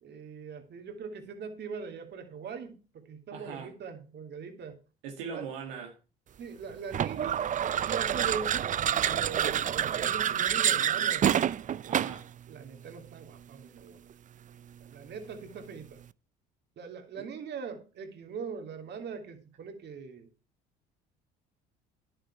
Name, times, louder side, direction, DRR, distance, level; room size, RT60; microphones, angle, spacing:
voice 1, 0.0-4.8 5.3-5.5 6.4-7.5 7.9-8.7 9.0-11.3 12.5-14.0 14.8-16.0 16.8-20.3, right 6 dB, 55° right, 2.8 m, -41 dB
voice 2, 3.3-3.7 5.0-6.0 11.9-12.2 17.1-17.3, right 6 dB, 85° right, 2.0 m, -40 dB
sound 1, 6.9-12.3, right 9 dB, 40° right, 0.5 m, -27 dB
10.5 x 9.3 x 4.4 m
supercardioid pair, 75°, 21 cm